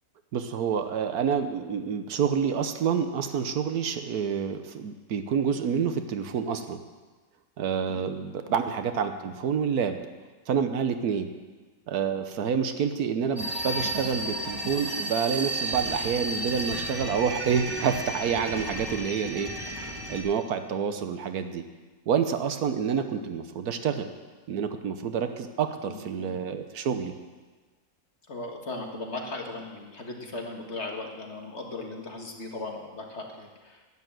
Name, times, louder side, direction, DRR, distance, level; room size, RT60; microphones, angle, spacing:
voice 1, 0.3-6.8 7.6-10.0 10.5-11.3 11.9-21.6 22.1-24.1 24.5-27.1, right 7 dB, 75° right, 8 dB, 1.4 m, -28 dB
sound 1, 13.4-20.2, right 1 dB, 15° right, 2.1 m, -33 dB
voice 2, 25.8-26.3 28.3-33.8, left 2 dB, 45° left, 1 dB, 1.9 m, -37 dB
11.5 x 9.5 x 7.7 m, 1.3 s
omnidirectional pair, 1.6 m